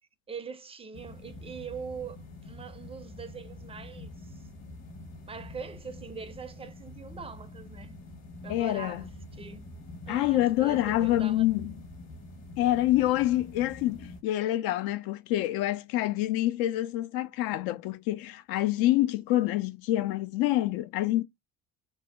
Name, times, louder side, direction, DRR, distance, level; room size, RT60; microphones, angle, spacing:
voice 1, 0.3-2.2 2.4-4.4 5.3-8.0 8.4-9.6 10.1-11.5, right 5 dB, 15° right, 0.4 m, -42 dB
sound 1, 0.9-14.2, left 2 dB, 40° left, 1.1 m, -46 dB
voice 2, 8.5-9.0 10.1-11.7 12.6-21.2, left 15 dB, 60° left, 0.5 m, -27 dB
2.7 x 2.0 x 3.3 m
hypercardioid pair, 55°, 42 cm